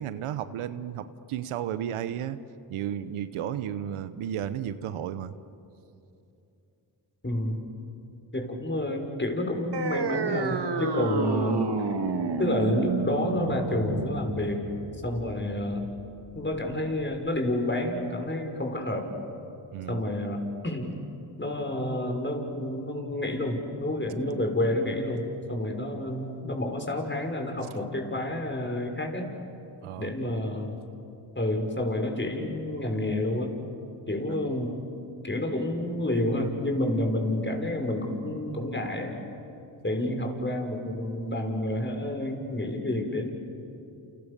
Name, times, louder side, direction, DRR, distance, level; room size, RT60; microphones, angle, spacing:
voice 1, 0.0-2.4 2.7-5.3 19.7-20.0 29.8-30.1, right 10 dB, 90° right, 13 dB, 1.0 m, -33 dB
voice 2, 7.2-7.7 8.3-11.6 12.4-14.7 15.0-15.9 16.4-19.1 19.9-21.0 21.4-29.3 30.0-30.8 31.3-33.6 34.1-34.8 35.2-39.2 39.8-43.3, left 1 dB, 20° left, 3 dB, 5.8 m, -29 dB
sound 1, 9.7-16.7, right 4 dB, 55° right, 2.2 m, -30 dB
29.5 x 29.5 x 6.9 m, 2.8 s
supercardioid pair, 45°, 49 cm